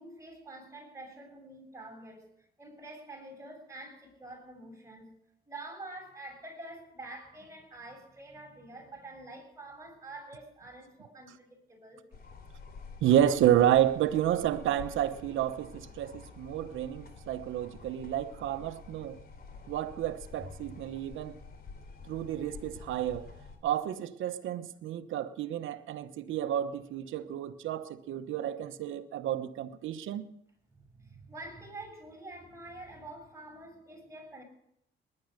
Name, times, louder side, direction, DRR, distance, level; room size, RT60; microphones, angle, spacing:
voice 1, 0.0-5.1 5.5-12.0 30.8-34.4, right 2 dB, 15° right, 7.3 m, -47 dB
sound 1, 12.1-23.6, left 4 dB, 50° left, 3.3 m, -49 dB
voice 2, 13.0-19.2 19.7-21.4 22.1-23.3 23.6-30.3, right 11 dB, 80° right, 1.1 m, -30 dB
19.5 x 11.0 x 6.5 m
cardioid pair, 90°, 20 cm